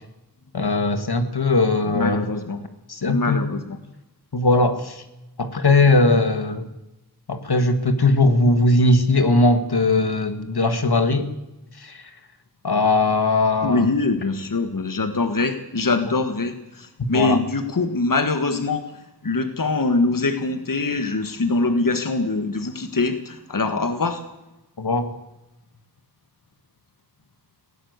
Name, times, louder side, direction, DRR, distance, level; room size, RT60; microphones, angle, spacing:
voice 1, 0.5-2.3 2.9-3.4 4.3-5.0 5.4-6.7 7.3-11.3 11.8-12.0 12.6-13.9 17.0-17.4 24.8-25.1, left 2 dB, 75° left, 8 dB, 1.9 m, -19 dB
voice 2, 1.9-2.6 3.1-3.8 13.6-18.8 19.2-24.2, left 3 dB, 55° left, 8 dB, 1.6 m, -23 dB
19.0 x 17.0 x 8.1 m, 0.97 s
wide cardioid pair, 65°, 39 cm